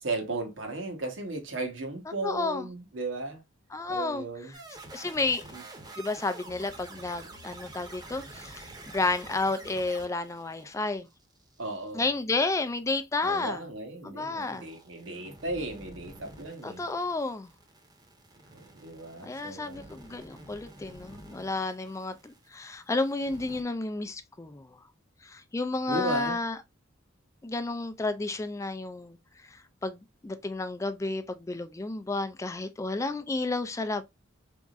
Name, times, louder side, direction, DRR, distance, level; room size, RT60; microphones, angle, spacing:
voice 1, 0.0-3.4 3.9-4.5 5.5-5.6 11.6-12.1 13.2-16.8 18.5-19.9 25.9-26.4, right 2 dB, 80° right, 1.2 m, -35 dB
voice 2, 2.2-2.7 3.7-4.3 4.9-5.4 6.0-8.7 8.9-11.1 11.9-13.6 14.0-14.7 16.6-17.5 19.2-24.7 25.2-26.6 27.4-29.2 29.5-34.0, left 3 dB, 15° left, 0.3 m, -31 dB
sound 1, 4.5-11.9 14.3-22.7 22.9-23.6, right 2 dB, 20° right, 0.8 m, -48 dB
4.1 x 3.5 x 2.4 m
head